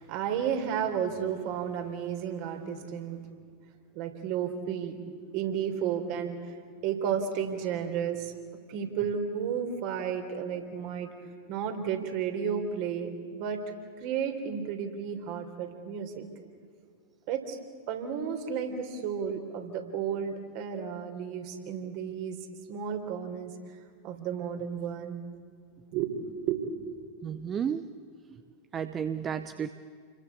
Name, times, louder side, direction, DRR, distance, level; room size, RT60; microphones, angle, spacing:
voice 1, 0.0-3.2 3.9-5.0 5.3-6.6 6.8-8.3 8.7-11.1 11.5-13.6 14.0-16.2 17.3-17.6 17.9-22.4 22.7-23.5 24.0-25.2 25.9-26.1 26.4-26.6, right 8 dB, 45° right, 5 dB, 3.7 m, -32 dB
voice 2, 27.2-27.9 28.3-28.4 28.7-29.7, right 8 dB, 25° right, 11 dB, 0.9 m, -32 dB
29.5 x 22.5 x 8.5 m, 2.1 s
figure-of-eight pair, 90°, 0 cm